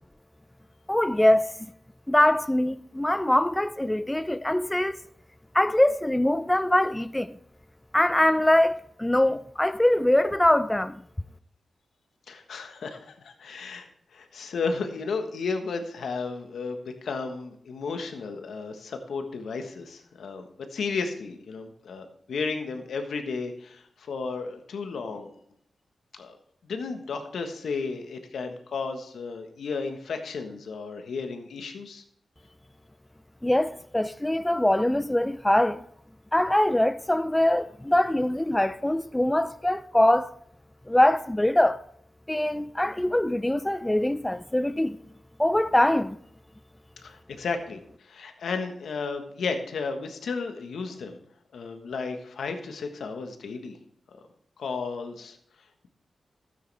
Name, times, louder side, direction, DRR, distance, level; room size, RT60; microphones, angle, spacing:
voice 1, 0.9-1.5 2.1-5.0 5.5-7.3 7.9-11.0 33.4-35.8 36.3-40.3 40.9-41.8 42.3-45.0 45.4-46.2, left 1 dB, 15° left, 0.5 m, -23 dB
voice 2, 12.3-13.0 13.2-25.3 26.1-26.4 26.6-32.0 47.0-47.8 48.1-51.2 51.5-53.7 54.6-55.4, left 4 dB, 80° left, 1.4 m, -33 dB
13.0 x 9.3 x 3.5 m
cardioid pair, 45°, 0 cm